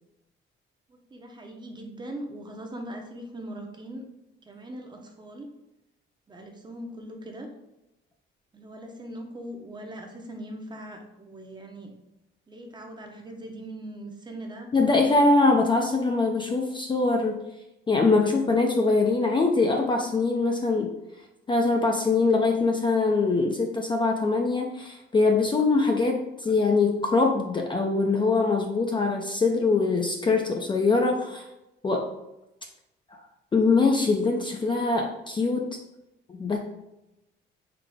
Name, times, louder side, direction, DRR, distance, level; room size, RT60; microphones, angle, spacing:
voice 1, 0.9-4.0 4.4-5.5 6.3-7.5 8.5-11.9 12.5-14.7, right 1 dB, 20° right, 3 dB, 0.7 m, -40 dB
voice 2, 14.7-17.4 17.9-20.9 21.5-31.5 31.8-32.1 33.1-33.2 33.5-35.7 36.3-36.6, left 3 dB, 25° left, 2 dB, 0.4 m, -23 dB
3.9 x 3.6 x 3.4 m, 0.91 s
cardioid pair, 140°, 21 cm